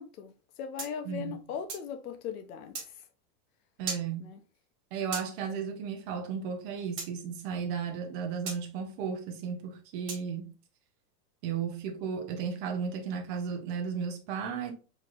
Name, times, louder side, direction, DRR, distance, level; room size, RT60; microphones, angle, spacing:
voice 1, 0.0-2.8 4.2-4.4, left 7 dB, 60° left, 0.8 m, -39 dB
sound 1, 0.8-1.9 2.7-2.9 3.9-4.1 5.1-5.3 7.0-7.1 8.5-8.6 10.1-10.3, right 4 dB, 50° right, 1.9 m, -37 dB
voice 2, 3.8-4.3 4.9-10.5 11.4-14.7, right 6 dB, 35° right, 0.7 m, -34 dB
4.3 x 3.1 x 2.4 m
supercardioid pair, 165°, 49 cm